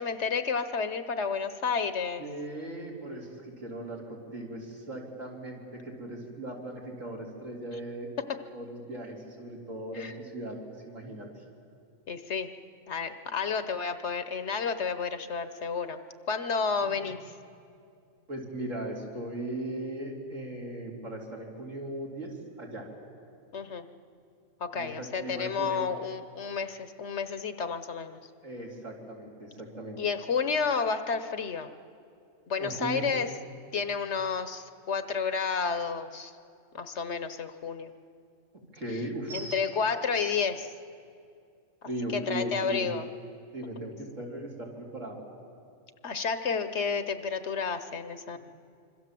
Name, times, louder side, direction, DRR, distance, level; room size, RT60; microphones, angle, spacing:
voice 1, 0.0-2.2 8.3-8.4 9.9-10.1 12.1-12.5 12.9-16.0 16.3-17.4 23.5-23.9 24.6-28.2 30.0-31.7 32.5-33.3 33.7-36.3 36.7-37.9 39.3-40.7 42.1-43.0 46.0-48.4, left 5 dB, 60° left, 10 dB, 1.1 m, -31 dB
voice 2, 2.2-8.1 8.5-11.4 16.8-17.1 18.3-22.9 24.7-25.9 28.4-30.0 32.6-33.1 38.7-39.7 41.8-42.9 43.5-45.2 48.3-48.4, right 1 dB, 65° right, -2 dB, 4.1 m, -38 dB
26.0 x 24.5 x 7.6 m, 2.4 s
omnidirectional pair, 1.4 m